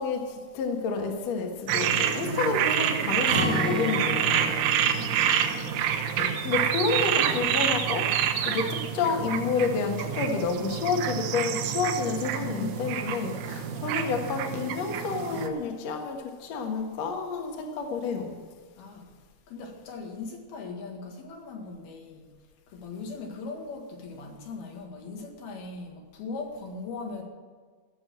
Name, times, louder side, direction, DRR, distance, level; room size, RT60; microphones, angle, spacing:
voice 1, 0.0-4.5 5.5-5.6 6.1-8.1 8.4-18.3, left 5 dB, 80° left, 3 dB, 1.5 m, -29 dB
sound 1, 1.7-15.5, right 9 dB, 85° right, 3.4 m, -28 dB
Acoustic guitar, 3.3-9.2 9.5-9.7 10.1-10.6, equal, 20° left, 2.7 m, -35 dB
voice 2, 4.8-5.4 12.4-13.4 18.8-19.1 19.5-22.3 22.7-27.2, left 4 dB, 60° left, 1 dB, 3.4 m, -39 dB
17.0 x 6.8 x 7.6 m, 1.5 s
omnidirectional pair, 5.4 m